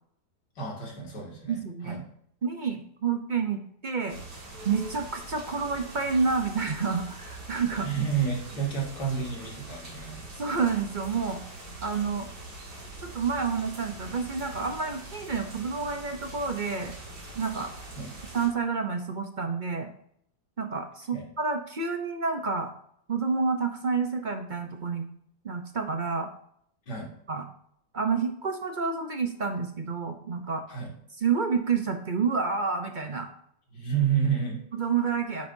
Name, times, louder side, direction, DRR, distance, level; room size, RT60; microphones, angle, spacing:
voice 1, 0.6-2.0 7.8-10.2 18.0-18.1 21.1-21.2 26.9-27.1 30.7-30.9 33.7-34.6, right 7 dB, 80° left, -1 dB, 2.9 m, -30 dB
voice 2, 1.5-2.0 2.4-4.2 4.6-7.9 10.4-11.4 11.8-12.3 13.0-16.9 17.4-17.7 18.3-19.9 20.6-22.7 23.1-25.1 25.4-26.3 27.3-27.5 27.9-30.6 31.2-33.3 34.8-35.5, right 5 dB, 45° right, 6 dB, 0.6 m, -29 dB
sound 1, 4.1-18.5, right 2 dB, 80° right, 2.6 m, -43 dB
9.7 x 8.3 x 2.7 m, 0.69 s
omnidirectional pair, 1.8 m